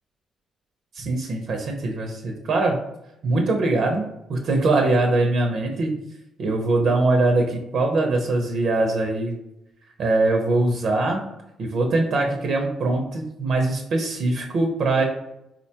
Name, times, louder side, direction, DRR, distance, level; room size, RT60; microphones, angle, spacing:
voice 1, 0.9-2.8 3.2-6.0 6.4-9.3 10.0-11.2 11.6-15.1, right 2 dB, 65° right, 2 dB, 0.5 m, -22 dB
3.8 x 2.2 x 2.7 m, 0.86 s
cardioid pair, 90°, 0 cm